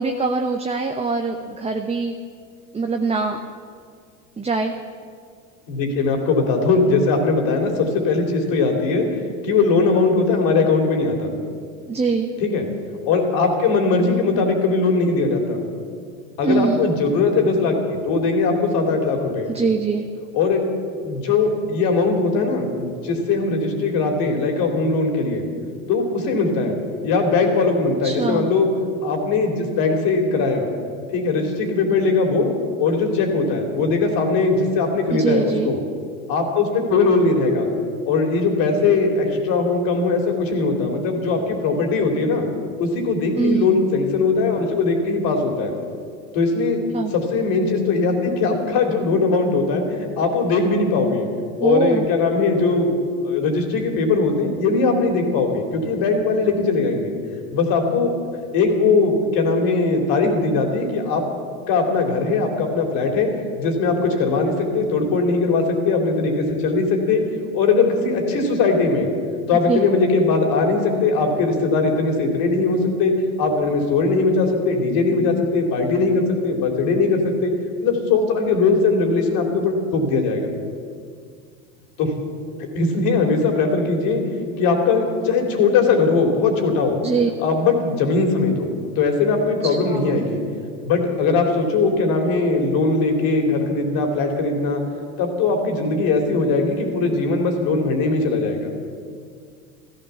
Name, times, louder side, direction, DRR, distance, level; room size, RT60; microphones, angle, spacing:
voice 1, 0.0-2.1 2.7-3.4 4.4-4.7 11.9-12.3 16.4-16.8 19.5-20.1 28.0-28.5 35.1-35.7 43.4-43.7 46.9-47.1 51.6-52.1 69.7-69.8 87.0-87.3 89.6-90.3, right 4 dB, 15° right, 4 dB, 1.0 m, -22 dB
voice 2, 5.7-9.1 9.4-11.3 12.4-12.7 13.1-15.6 16.4-19.5 20.3-20.6 21.0-25.5 25.9-28.7 29.0-30.7 31.1-32.5 32.8-35.8 36.3-37.7 38.1-42.5 42.8-45.7 46.3-46.8 47.1-51.3 51.6-57.1 57.5-58.1 58.5-61.2 61.7-63.3 63.6-67.2 67.5-69.1 69.5-77.5 77.8-80.5 82.0-82.1 82.7-84.2 84.6-87.0 87.4-90.4 90.8-94.8 95.2-98.7, left 3 dB, 55° left, 3 dB, 3.4 m, -20 dB
14.5 x 14.5 x 7.0 m, 2.1 s
hypercardioid pair, 85°, 42 cm